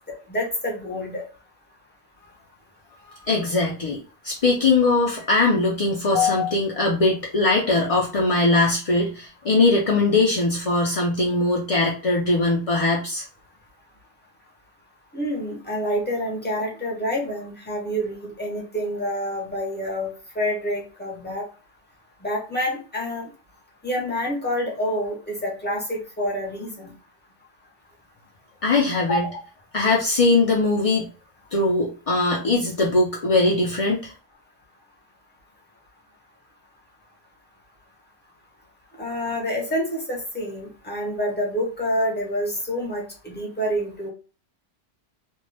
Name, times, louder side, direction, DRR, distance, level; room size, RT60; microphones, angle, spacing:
voice 1, 0.1-1.2 6.1-6.5 15.1-21.4 22.2-23.3 23.8-26.9 29.1-29.4 39.0-44.1, left 1 dB, 10° left, -2 dB, 0.7 m, -27 dB
voice 2, 3.3-4.0 4.2-13.2 28.6-29.2 29.7-31.1 31.5-34.1, left 2 dB, 65° left, -2 dB, 0.3 m, -21 dB
2.6 x 2.2 x 3.3 m, 0.36 s
omnidirectional pair, 1.3 m